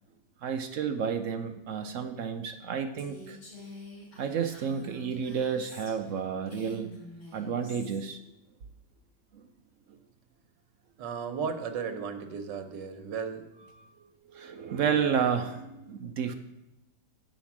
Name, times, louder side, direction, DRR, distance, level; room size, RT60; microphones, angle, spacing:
voice 1, 0.4-3.4 4.2-7.0 7.3-8.2 14.3-16.3, right 7 dB, 65° right, 7 dB, 0.8 m, -31 dB
Female speech woman speaking, 3.0-6.2 6.5-8.0, left 1 dB, 70° left, 3.7 m, -47 dB
voice 2, 11.0-13.5, right 6 dB, 80° right, 7 dB, 1.6 m, -35 dB
9.4 x 5.2 x 7.2 m, 0.95 s
omnidirectional pair, 1.9 m